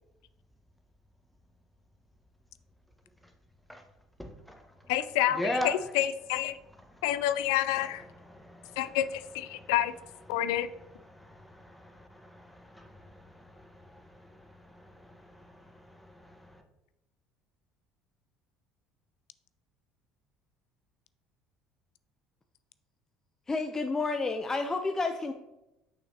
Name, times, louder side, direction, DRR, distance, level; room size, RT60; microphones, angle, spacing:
voice 1, 4.2-4.6 5.3-5.8 8.2-9.0 9.5-9.7 11.1-16.6, equal, ahead, 3 dB, 1.1 m, -40 dB
voice 2, 4.9-6.6 7.0-8.0 8.8-9.9 10.3-10.7, left 12 dB, 80° left, 13 dB, 0.3 m, -28 dB
voice 3, 23.5-25.3, left 3 dB, 20° left, 5 dB, 0.5 m, -30 dB
6.2 x 6.0 x 2.8 m, 0.92 s
hypercardioid pair, 70°, 2 cm